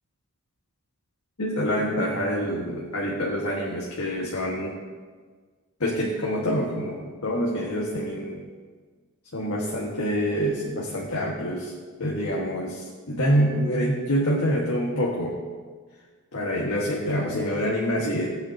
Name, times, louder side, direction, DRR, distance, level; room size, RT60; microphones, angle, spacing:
voice 1, 1.4-4.8 5.8-8.5 9.3-11.7 12.0-15.4 16.3-18.3, equal, 80° left, -3 dB, 1.6 m, -26 dB
19.5 x 8.5 x 2.9 m, 1.5 s
head